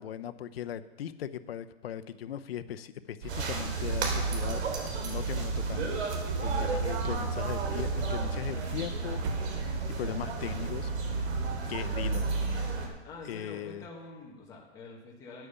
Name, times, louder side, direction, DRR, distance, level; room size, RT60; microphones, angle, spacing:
voice 1, 0.0-4.6 5.0-6.0 6.4-10.9 11.7-12.3 13.3-13.8, left 10 dB, 65° left, 11 dB, 0.8 m, -39 dB
sound 1, 3.2-10.6, right 4 dB, 25° right, 0.5 m, -39 dB
sound 2, 3.3-12.9, right 4 dB, 85° right, 3.5 m, -32 dB
voice 2, 13.0-15.5, left 3 dB, 10° left, -2 dB, 1.4 m, -46 dB
10.0 x 9.3 x 7.0 m, 1.1 s
hypercardioid pair, 165°, 33 cm